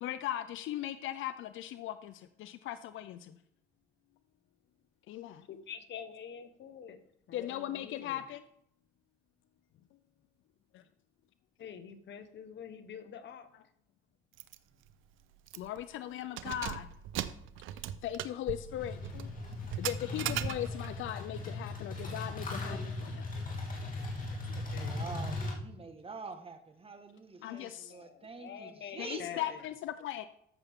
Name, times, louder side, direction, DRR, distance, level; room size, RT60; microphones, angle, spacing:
voice 1, 0.0-2.1 2.4-3.2 5.1-5.4 7.3-8.4 15.6-16.9 18.0-19.3 19.8-23.2 27.4-27.9 29.0-30.3, left 12 dB, 80° left, 12 dB, 0.5 m, -38 dB
voice 2, 5.5-7.0 7.3-8.2 11.6-13.5 24.7-24.9 27.4-29.6, left 8 dB, 65° left, 10 dB, 1.2 m, -47 dB
Keys jangling, 14.4-14.6 14.9-15.0 15.5-15.8 16.2-21.0, right 12 dB, 85° right, 0.6 m, -39 dB
sound 1, 18.6-25.5, left 2 dB, 45° left, 3.0 m, -38 dB
voice 3, 24.8-29.4, right 4 dB, 30° right, 7 dB, 1.5 m, -46 dB
14.0 x 6.9 x 3.6 m, 0.73 s
cardioid pair, 90°, 20 cm